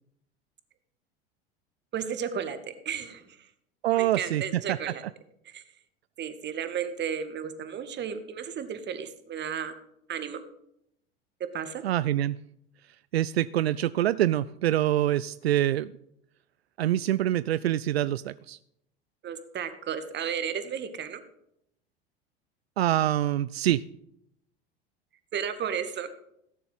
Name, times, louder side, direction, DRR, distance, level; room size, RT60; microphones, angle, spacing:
voice 1, 1.9-2.6 2.9-3.4 3.9-5.0 5.5-5.6 6.2-9.8 10.1-10.4 11.5-11.8 19.2-21.2 25.3-26.1, right 8 dB, 35° right, 9 dB, 2.0 m, -33 dB
voice 2, 3.8-4.8 11.8-12.4 13.1-15.9 16.8-18.6 22.8-23.8, right 13 dB, 80° right, 16 dB, 0.5 m, -25 dB
17.0 x 7.0 x 7.8 m, 0.77 s
hypercardioid pair, 80°, 31 cm